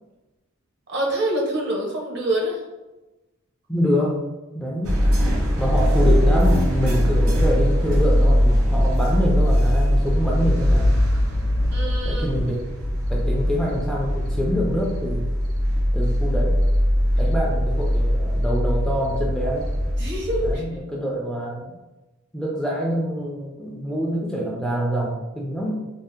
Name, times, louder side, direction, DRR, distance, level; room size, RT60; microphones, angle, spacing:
voice 1, 0.9-2.6 11.7-12.3 20.0-20.6, right 1 dB, 55° right, -1 dB, 0.7 m, -25 dB
voice 2, 3.7-4.2 4.5-5.1 5.6-11.0 12.0-12.7 13.1-15.3 15.9-16.6 17.2-19.7 20.4-21.7 22.3-25.9, equal, 5° left, -3 dB, 0.3 m, -25 dB
sound 1, 4.8-20.6, equal, 90° right, 0.6 m, -21 dB
2.7 x 2.0 x 3.4 m, 1.1 s
head